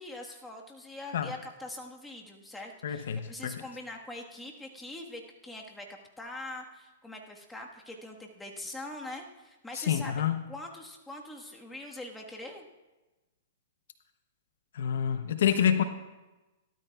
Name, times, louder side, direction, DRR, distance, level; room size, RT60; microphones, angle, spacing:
voice 1, 0.0-5.9 6.2-12.7, left 2 dB, 5° left, 0 dB, 1.4 m, -43 dB
voice 2, 2.8-3.6 9.7-10.4 14.7-15.8, left 9 dB, 70° left, 10 dB, 0.7 m, -27 dB
17.5 x 12.5 x 2.3 m, 1.1 s
hypercardioid pair, 130°, 0 cm